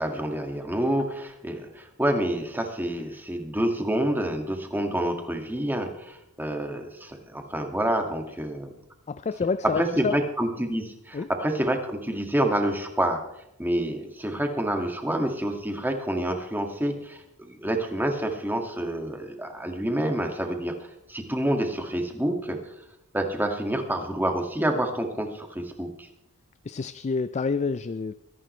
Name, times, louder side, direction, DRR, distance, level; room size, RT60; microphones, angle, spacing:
voice 1, 0.0-8.8 9.8-13.2 13.6-20.8 21.1-22.6 23.1-26.1, right 1 dB, 10° right, 3 dB, 2.0 m, -28 dB
voice 2, 9.1-10.2 11.1-11.3 26.6-28.1, left 4 dB, 30° left, 13 dB, 0.4 m, -28 dB
24.0 x 11.0 x 3.2 m, 0.84 s
head